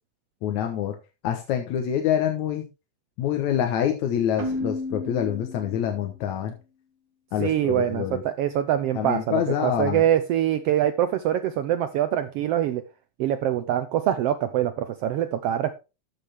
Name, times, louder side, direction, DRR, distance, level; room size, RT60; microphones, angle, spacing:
voice 1, 0.4-1.0 1.2-2.7 3.2-6.5 7.3-8.2 8.9-10.0, left 9 dB, 75° left, 4 dB, 2.4 m, -26 dB
Keyboard (musical), 4.4-6.2, left 2 dB, 70° right, 3.2 m, -33 dB
voice 2, 7.4-12.8 13.2-15.8, right 11 dB, 90° right, 10 dB, 1.3 m, -24 dB
13.5 x 6.3 x 3.5 m, 0.28 s
omnidirectional pair, 3.5 m